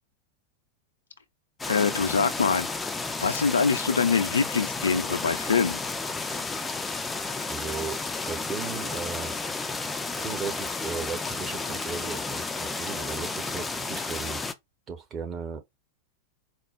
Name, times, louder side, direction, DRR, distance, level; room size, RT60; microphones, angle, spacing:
sound 1, 1.6-14.5, left 3 dB, 10° left, 0.5 m, -32 dB
voice 1, 1.7-2.7 3.2-5.8, left 5 dB, 75° left, 0.6 m, -24 dB
voice 2, 7.5-8.0 8.3-9.3 10.2-14.4 14.9-15.6, right 6 dB, 25° right, 1.0 m, -36 dB
4.4 x 2.2 x 3.1 m
figure-of-eight pair, 90°, 0 cm